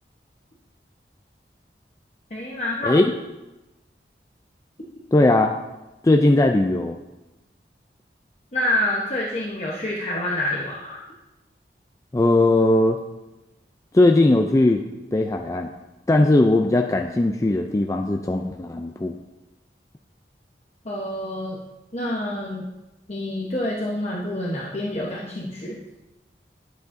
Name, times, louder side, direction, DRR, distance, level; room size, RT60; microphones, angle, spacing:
voice 1, 2.3-3.0 8.5-11.0 20.8-21.6 21.9-22.6 23.1-25.8, left 1 dB, 35° left, -4 dB, 1.0 m, -27 dB
voice 2, 5.1-5.5 6.0-7.0 12.1-13.0 13.9-14.8 15.1-15.7 16.1-19.2, left 2 dB, 20° left, 3 dB, 0.3 m, -18 dB
11.0 x 8.0 x 2.6 m, 1.0 s
head